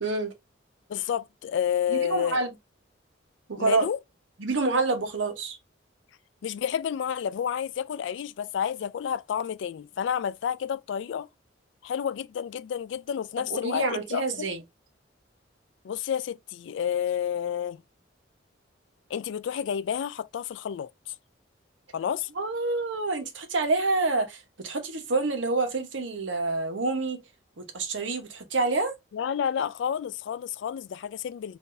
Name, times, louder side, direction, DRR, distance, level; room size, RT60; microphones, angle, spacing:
voice 1, 0.0-0.3 1.9-2.5 3.5-3.9 4.4-5.6 13.4-14.6 22.4-27.2 27.6-28.9, right 3 dB, 80° right, 1.0 m, -27 dB
voice 2, 0.9-2.4 3.6-4.0 6.4-11.3 11.8-14.5 15.8-17.8 19.1-20.9 21.9-22.3 29.1-31.6, left 8 dB, 70° left, 0.3 m, -30 dB
3.8 x 2.7 x 2.5 m
head